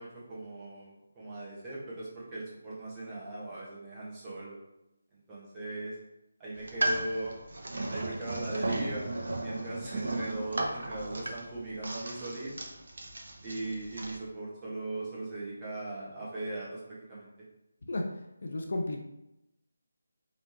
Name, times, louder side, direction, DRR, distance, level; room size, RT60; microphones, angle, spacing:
voice 1, 0.0-4.6 5.1-6.0 6.4-7.3 7.9-9.1 9.4-12.7 13.4-17.3, right 2 dB, 15° right, -7 dB, 1.3 m, -39 dB
sound 1, 6.5-14.2, right 2 dB, 50° right, 0.8 m, -35 dB
voice 2, 18.4-19.0, left 2 dB, 50° left, 2 dB, 0.6 m, -33 dB
5.1 x 3.1 x 2.9 m, 0.90 s
figure-of-eight pair, 155°, 0 cm